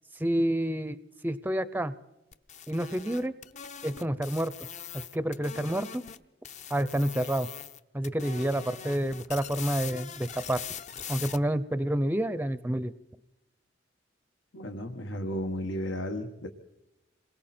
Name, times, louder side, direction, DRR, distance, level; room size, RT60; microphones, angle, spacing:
voice 1, 0.2-1.0 1.2-1.9 2.7-3.3 3.8-4.5 4.9-6.0 6.7-7.5 7.9-10.6 11.1-12.9, right 1 dB, 10° right, 15 dB, 0.6 m, -29 dB
sound 1, 2.3-6.2 6.4-11.4, left 8 dB, 40° left, 0.7 m, -42 dB
voice 2, 14.5-16.5, equal, 90° left, 4 dB, 1.6 m, -34 dB
27.5 x 22.0 x 4.4 m, 0.97 s
head